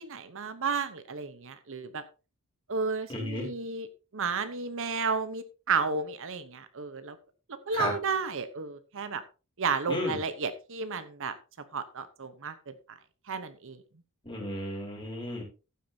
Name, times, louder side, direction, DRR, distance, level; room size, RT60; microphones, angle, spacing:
voice 1, 0.0-2.0 2.7-3.9 4.1-7.2 7.5-9.2 9.6-11.3 11.7-12.7 13.3-13.8, right 5 dB, 60° right, 11 dB, 1.0 m, -32 dB
voice 2, 3.1-3.5 7.7-7.9 9.9-10.2 14.2-15.4, left 1 dB, 20° left, -1 dB, 4.2 m, -33 dB
15.0 x 8.5 x 2.8 m, 0.32 s
head